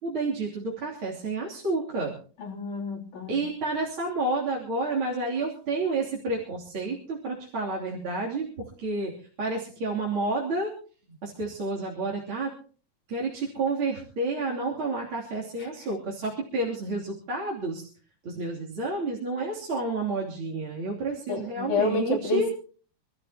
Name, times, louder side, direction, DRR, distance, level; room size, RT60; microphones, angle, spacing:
voice 1, 0.0-2.2 3.3-8.5 8.8-9.1 9.4-10.7 11.1-12.5 13.1-17.9 18.2-22.5, right 3 dB, 40° right, -5 dB, 3.7 m, -30 dB
voice 2, 2.4-3.4 21.3-22.5, left 3 dB, 65° left, -2 dB, 4.6 m, -29 dB
26.5 x 13.5 x 2.9 m, 0.41 s
omnidirectional pair, 3.8 m